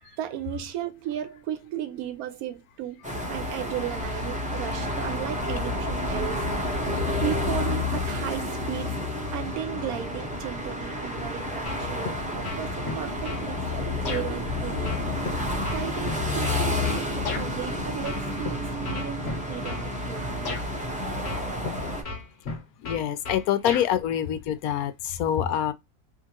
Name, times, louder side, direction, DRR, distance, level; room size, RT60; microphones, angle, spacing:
voice 1, 0.0-6.5 7.2-9.0 9.3-15.0 15.7-20.5, right 11 dB, 75° right, 1.1 m, -35 dB
sound 1, 3.0-22.0, left 1 dB, 5° right, 0.7 m, -30 dB
sound 2, 11.7-12.2 12.4-13.5 14.1-14.2 14.9-17.5 18.0-18.5 18.8-19.9 20.5-20.6 21.3-21.7 22.0-23.9, left 3 dB, 45° left, 1.3 m, -34 dB
voice 2, 22.8-25.7, left 10 dB, 75° left, 1.0 m, -26 dB
3.7 x 2.4 x 2.9 m
omnidirectional pair, 1.6 m